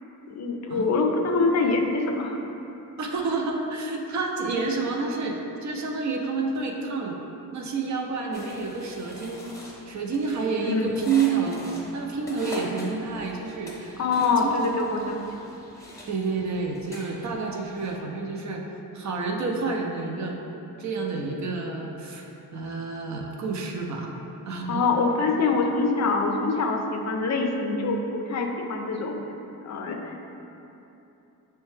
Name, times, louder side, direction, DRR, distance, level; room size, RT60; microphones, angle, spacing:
voice 1, 0.3-2.4 10.6-10.9 14.0-15.5 24.7-29.2 29.6-30.2, left 3 dB, 50° left, 2 dB, 0.4 m, -25 dB
voice 2, 3.0-7.2 7.5-9.5 9.9-11.6 11.9-14.5 15.0-15.2 16.1-18.6 18.9-20.4 20.8-24.1 24.5-24.8, right 4 dB, 50° right, 1 dB, 0.5 m, -29 dB
sound 1, 8.3-18.0, equal, 10° left, 0.8 m, -43 dB
6.2 x 2.2 x 3.2 m, 2.9 s
cardioid pair, 100°, 36 cm